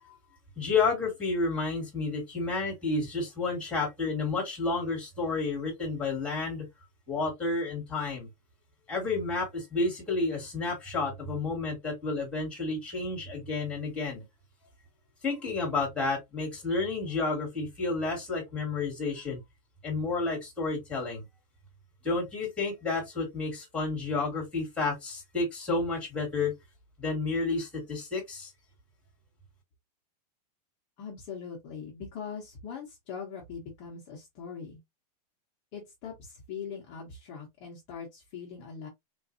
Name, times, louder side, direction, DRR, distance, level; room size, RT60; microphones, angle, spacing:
voice 1, 0.6-6.7 7.1-8.3 8.9-14.2 15.2-19.4 19.8-21.2 22.0-26.5 27.0-28.5, left 3 dB, 5° left, 1.6 m, -31 dB
voice 2, 31.0-34.8 35.7-38.9, left 6 dB, 30° left, 0.9 m, -41 dB
3.9 x 2.6 x 2.5 m
supercardioid pair, 175°, 21 cm